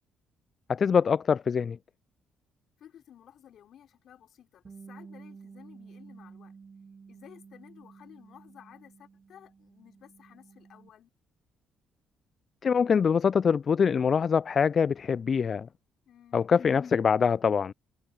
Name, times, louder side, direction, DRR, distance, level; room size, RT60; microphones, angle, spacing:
voice 1, 0.7-1.8 12.6-15.7 16.3-17.7, left 6 dB, 45° left, 0.3 m, -24 dB
voice 2, 2.8-6.5 7.1-11.1 16.1-16.4, left 10 dB, 65° left, 3.9 m, -54 dB
Bass guitar, 4.6-10.9, right 5 dB, 40° right, 0.9 m, -51 dB
supercardioid pair, 60°, 0 cm